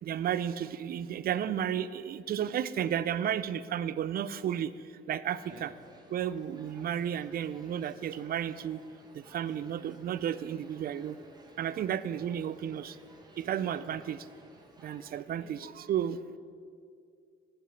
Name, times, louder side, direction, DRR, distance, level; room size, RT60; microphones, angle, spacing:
voice 1, 0.0-4.7 5.1-5.7 6.1-8.8 9.1-11.2 11.6-13.0 13.4-14.2 14.8-16.2, right 9 dB, 50° right, 16 dB, 0.4 m, -33 dB
sound 1, 5.2-15.2, right 1 dB, 20° right, 1.2 m, -56 dB
voice 2, 15.3-15.7 16.0-16.4, right 3 dB, 85° right, -1 dB, 2.0 m, -54 dB
8.7 x 4.9 x 7.0 m, 2.3 s
cardioid pair, 90°, 20 cm